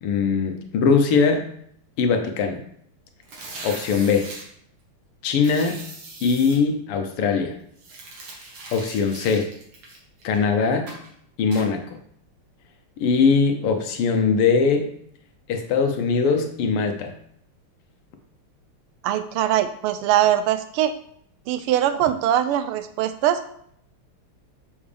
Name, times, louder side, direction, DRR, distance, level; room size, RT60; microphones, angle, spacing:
voice 1, 0.0-1.4 2.0-2.6 3.6-4.3 5.2-5.8 6.2-7.5 8.7-9.5 10.2-10.9 11.4-11.8 13.0-14.9 15.5-17.1, left 5 dB, 90° left, 5 dB, 1.8 m, -21 dB
sound 1, 3.2-4.4 5.4-6.6 7.8-10.4 10.9-11.1 11.5-11.7, right 2 dB, 70° right, 2.5 m, -40 dB
voice 2, 19.0-20.9 21.5-23.4, right 11 dB, 85° right, 10 dB, 1.5 m, -22 dB
7.2 x 6.3 x 3.4 m, 0.66 s
omnidirectional pair, 2.4 m